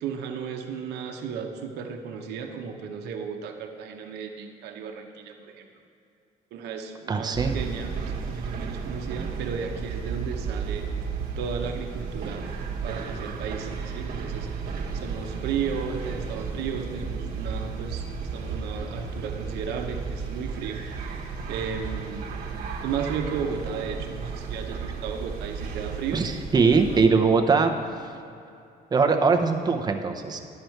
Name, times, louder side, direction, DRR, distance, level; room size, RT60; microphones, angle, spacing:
voice 1, 0.0-5.7 6.5-10.9 11.4-12.5 12.8-14.5 14.9-20.8 21.5-22.4 22.8-26.2 26.5-27.2, right 6 dB, 80° right, 3 dB, 0.9 m, -34 dB
voice 2, 7.1-7.6 26.1-27.7 28.9-30.4, right 4 dB, 25° right, 4 dB, 0.7 m, -21 dB
sound 1, 7.3-27.1, right 5 dB, 60° right, 1.2 m, -33 dB
10.5 x 6.6 x 4.5 m, 2.6 s
cardioid pair, 110°, 17 cm